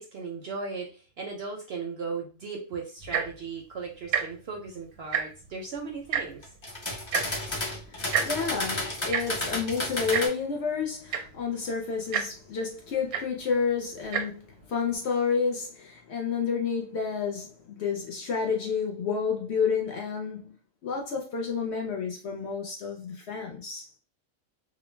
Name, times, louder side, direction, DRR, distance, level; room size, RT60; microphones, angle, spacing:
voice 1, 0.0-6.6, right 4 dB, 65° right, 0.6 m, -37 dB
Tick-tock, 3.0-3.4 4.0-4.2 4.5-4.7 5.0-5.5 6.1-6.2 7.1-7.2 8.1-8.3 9.1-9.2 10.1-10.2 10.8-10.9 11.1-11.4 12.1-12.2 13.1-13.2 14.0-14.2 14.9-15.0, right 8 dB, 85° right, 1.1 m, -27 dB
sound 1, 6.4-10.3, left 2 dB, 30° left, 0.6 m, -32 dB
voice 2, 7.6-20.6 20.8-23.9, left 5 dB, 65° left, 0.7 m, -30 dB
2.4 x 2.0 x 3.2 m
omnidirectional pair, 1.5 m